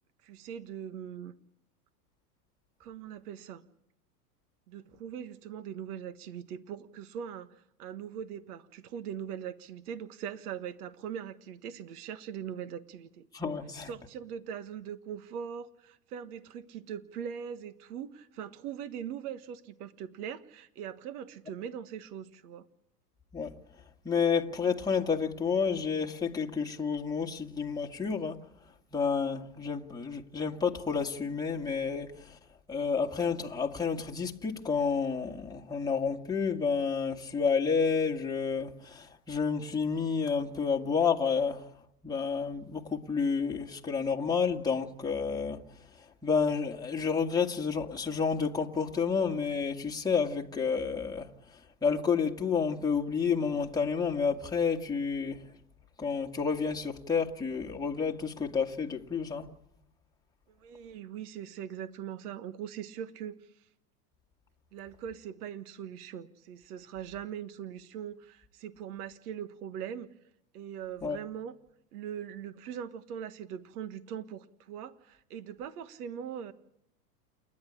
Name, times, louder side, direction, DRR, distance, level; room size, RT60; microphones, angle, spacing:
voice 1, 0.2-1.3 2.8-3.6 4.7-13.3 13.8-22.6 60.6-63.4 64.7-70.1 70.5-71.5 71.9-76.5, right 8 dB, 65° right, 1.5 m, -41 dB
voice 2, 13.3-13.9 23.3-23.6 24.0-28.4 28.9-32.4 32.7-41.7 42.0-45.6 46.2-51.3 51.8-55.4 56.0-59.5 71.0-71.2, left 5 dB, 10° left, 1.8 m, -30 dB
29.0 x 11.0 x 10.0 m
hypercardioid pair, 115°, 49 cm